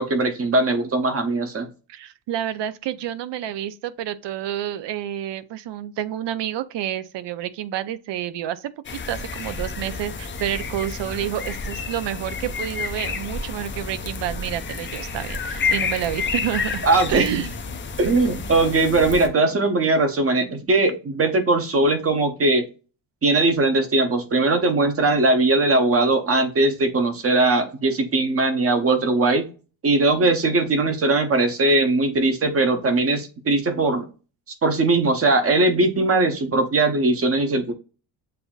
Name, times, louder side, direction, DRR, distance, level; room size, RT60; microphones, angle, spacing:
voice 1, 0.0-1.7 16.8-17.4 18.0-22.6 23.2-29.5 29.8-34.1 34.6-37.7, right 2 dB, 30° right, 0.8 m, -20 dB
voice 2, 1.9-8.7 9.1-17.8, right 11 dB, 60° right, 0.6 m, -29 dB
sound 1, 8.8-19.3, left 5 dB, 25° left, 0.5 m, -30 dB
7.7 x 2.6 x 2.3 m
cardioid pair, 155°, 48 cm